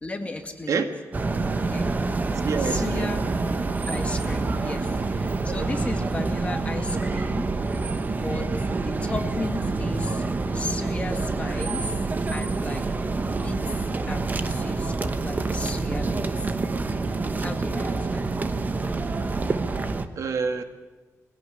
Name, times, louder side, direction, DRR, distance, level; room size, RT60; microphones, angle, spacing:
voice 1, 0.0-0.9 1.6-1.9 2.6-3.3 3.9-7.5 8.1-8.5 8.8-10.3 10.5-12.9 13.2-16.5 17.4-18.3, left 2 dB, 20° left, 5 dB, 2.1 m, -35 dB
sound 1, 1.1-20.1, right 3 dB, 30° right, 1.2 m, -27 dB
voice 2, 2.4-3.1 8.6-8.9 20.2-20.6, right 5 dB, 70° right, 7 dB, 1.8 m, -27 dB
22.0 x 17.0 x 10.0 m, 1.2 s
wide cardioid pair, 145°, 6 cm